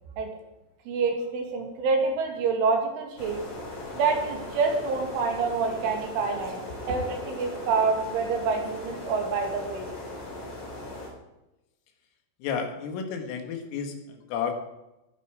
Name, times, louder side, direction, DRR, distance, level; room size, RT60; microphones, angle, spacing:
voice 1, 0.9-3.4 4.0-6.6 6.9-9.9, right 4 dB, 70° right, 2 dB, 4.8 m, -27 dB
sound 1, 3.2-11.1, left 2 dB, 35° left, 4.5 m, -39 dB
voice 2, 12.4-14.5, left 6 dB, 80° left, 4 dB, 4.4 m, -32 dB
21.0 x 9.4 x 5.0 m, 0.92 s
omnidirectional pair, 5.8 m